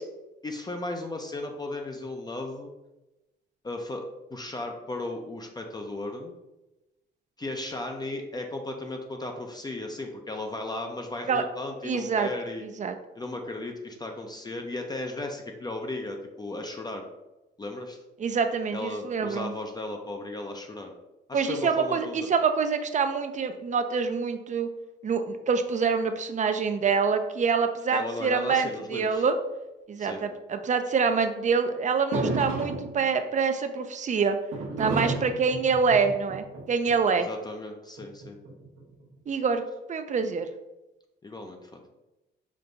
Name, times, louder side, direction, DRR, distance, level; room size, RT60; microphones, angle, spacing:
voice 1, 0.4-2.7 3.6-4.0 4.3-6.3 7.4-12.7 13.2-17.0 17.6-18.0 18.7-20.9 21.3-22.3 27.9-29.3 30.0-30.2 37.2-38.4 41.2-41.7, left 2 dB, 20° left, 3 dB, 0.5 m, -35 dB
voice 2, 11.8-12.3 12.6-12.9 18.2-19.5 21.3-24.7 25.0-29.4 29.9-34.4 34.8-37.3 39.3-39.6 39.9-40.5, right 5 dB, 40° right, 8 dB, 0.5 m, -26 dB
sound 1, 32.1-33.1 34.5-36.9 38.0-38.9, right 2 dB, 85° right, 1.0 m, -31 dB
5.2 x 2.2 x 3.9 m, 1.0 s
cardioid pair, 90°, 20 cm